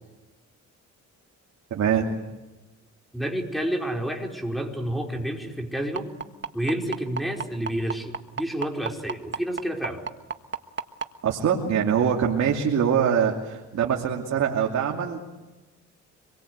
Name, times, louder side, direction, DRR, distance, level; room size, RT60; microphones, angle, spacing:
voice 1, 1.7-2.1 11.2-15.2, right 7 dB, 60° right, 0 dB, 2.8 m, -23 dB
voice 2, 3.1-6.1 6.5-10.0, right 1 dB, ahead, 2 dB, 5.0 m, -29 dB
sound 1, 6.0-11.1 12.1-12.2 12.6-12.7 13.2-13.3, right 6 dB, 40° right, 1.6 m, -30 dB
26.5 x 22.5 x 8.2 m, 1.1 s
cardioid pair, 90°, 30 cm